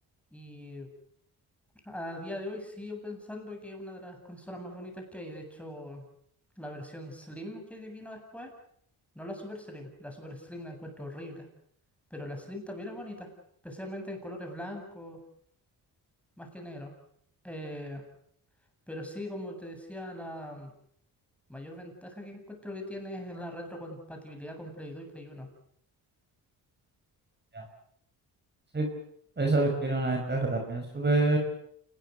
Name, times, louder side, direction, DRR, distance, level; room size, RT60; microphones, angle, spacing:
voice 1, 0.3-0.9 1.8-6.0 6.6-8.5 9.1-11.5 12.1-13.3 13.6-15.2 16.4-16.9 17.4-18.0 18.9-20.7 21.5-25.5, left 1 dB, 5° left, 3 dB, 8.0 m, -41 dB
voice 2, 29.4-31.4, right 2 dB, 25° right, 3 dB, 5.8 m, -26 dB
28.5 x 20.5 x 6.9 m, 0.67 s
cardioid pair, 95°, 41 cm